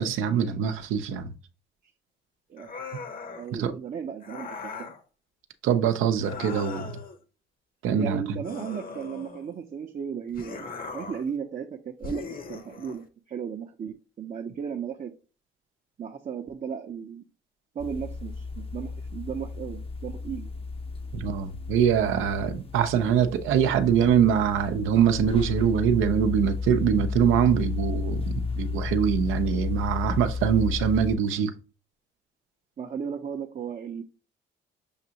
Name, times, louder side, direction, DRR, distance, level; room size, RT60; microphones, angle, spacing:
voice 1, 0.0-1.3 3.6-3.7 5.6-6.9 7.8-8.2 21.1-31.5, right 8 dB, 85° right, 0.6 m, -23 dB
sound 1, 2.6-3.5 4.2-5.0 6.1-7.2 8.4-9.6 10.3-11.3 12.0-13.0, left 4 dB, 45° left, 0.9 m, -39 dB
voice 2, 3.4-4.9 7.9-15.1 16.0-17.2 17.7-20.5 32.8-34.0, right 7 dB, 40° right, 0.6 m, -35 dB
sound 2, 17.8-31.2, left 4 dB, 30° left, 0.6 m, -33 dB
6.5 x 2.5 x 2.8 m
cardioid pair, 90°, 20 cm